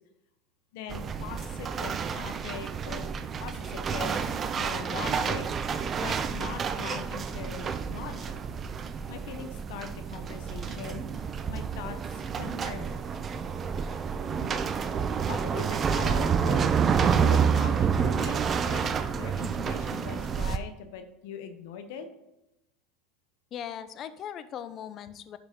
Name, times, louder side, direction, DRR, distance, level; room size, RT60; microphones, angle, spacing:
voice 1, 0.7-3.1 3.4-4.3 4.6-8.4 9.1-11.1 11.5-13.0 15.3-22.1, left 7 dB, 75° left, 7 dB, 1.0 m, -41 dB
sound 1, 0.9-20.6, right 6 dB, 30° right, 0.5 m, -29 dB
sound 2, 10.8-11.3 11.5-11.9 12.3-12.8 13.1-13.6 14.2-14.7 15.0-15.5 15.9-16.4 16.8-16.9, right 3 dB, 10° right, 2.5 m, -45 dB
voice 2, 23.5-25.4, left 9 dB, 40° left, 13 dB, 0.6 m, -39 dB
11.0 x 4.9 x 3.7 m, 0.89 s
supercardioid pair, 120°, 0 cm